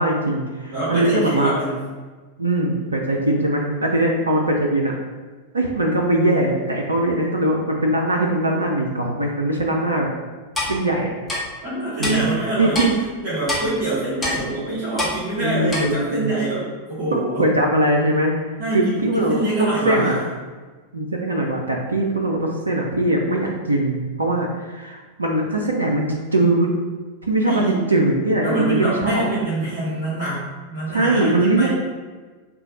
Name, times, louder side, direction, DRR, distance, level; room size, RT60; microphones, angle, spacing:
voice 1, 0.0-1.5 2.4-5.0 5.5-10.1 10.7-11.1 12.0-12.3 12.6-12.9 15.4-16.3 17.1-18.3 18.7-20.2 20.9-26.7 27.2-29.2 30.9-31.7, right 1 dB, 75° right, 1 dB, 0.3 m, -21 dB
voice 2, 0.7-1.8 11.6-17.4 18.6-20.2 27.4-27.8 28.4-30.4 30.7-31.7, right 2 dB, 50° right, -11 dB, 1.2 m, -25 dB
Clock, 10.5-10.7 11.3-11.4 12.0-12.1 12.7-12.9 13.5-13.6 14.2-14.4 15.0-15.1 15.7-15.8, left 2 dB, 10° left, 0.9 m, -24 dB
3.7 x 2.1 x 2.8 m, 1.3 s
figure-of-eight pair, 90°, 0 cm